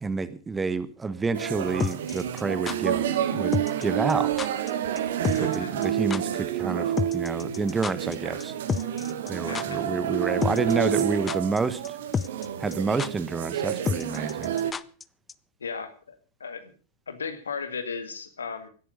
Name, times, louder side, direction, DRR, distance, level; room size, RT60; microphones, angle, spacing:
voice 1, 0.0-3.5 3.8-4.3 5.4-8.5 9.3-11.8 12.6-14.5, right 4 dB, 15° right, 15 dB, 1.2 m, -29 dB
sound 1, 1.3-14.7, right 10 dB, 60° right, 1.7 m, -29 dB
sound 2, 1.8-2.8 3.5-3.8 4.1-4.2 4.4-4.7 5.0-5.1 5.2-5.6 5.8-5.9 6.1-6.2 7.0-8.1 8.4-8.5 8.7-9.3 9.5-9.7 10.4-10.7 11.0-11.6 11.8-11.9 12.1-12.5 12.7-12.8 13.0-13.1 13.9-15.0 15.3-15.4, left 6 dB, 20° left, 0.6 m, -29 dB
voice 2, 5.4-5.7 9.5-9.8 15.6-16.7 17.1-18.7, left 5 dB, 70° left, 10 dB, 2.1 m, -36 dB
17.0 x 13.0 x 5.2 m, 0.39 s
figure-of-eight pair, 90°, 0 cm